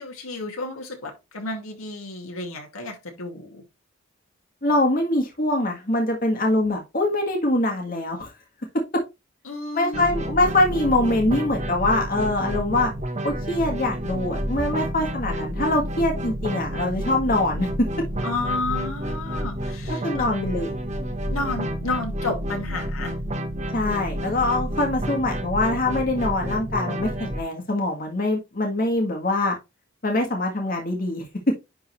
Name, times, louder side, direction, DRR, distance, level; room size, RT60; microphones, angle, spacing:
voice 1, 0.0-3.6 9.4-10.2 18.2-20.3 21.3-23.1, left 3 dB, 80° left, 2.3 m, -31 dB
voice 2, 4.6-8.3 8.9-9.0 9.7-12.9 13.2-17.7 20.0-20.7 23.7-29.6 30.0-31.2, left 2 dB, 40° left, 1.7 m, -23 dB
sound 1, 9.9-27.4, equal, 35° right, 1.1 m, -30 dB
10.5 x 3.9 x 3.1 m
head